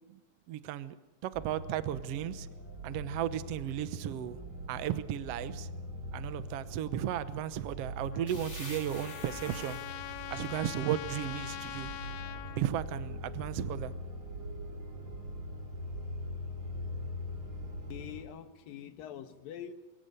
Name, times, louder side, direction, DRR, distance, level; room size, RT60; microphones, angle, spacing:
voice 1, 0.5-0.9 1.2-2.5 2.8-4.4 4.7-5.7 6.1-9.8 10.3-11.9 12.6-13.9, right 11 dB, 80° right, 13 dB, 1.3 m, -35 dB
sound 1, 1.3-18.2, equal, 35° right, 4.3 m, -42 dB
Trumpet, 8.1-12.6, left 13 dB, 90° left, 1.5 m, -43 dB
sound 2, 8.3-11.9, left 2 dB, 20° left, 2.9 m, -50 dB
voice 2, 17.9-19.7, left 9 dB, 75° left, 9 dB, 3.0 m, -44 dB
24.0 x 23.5 x 6.8 m, 1.1 s
omnidirectional pair, 4.3 m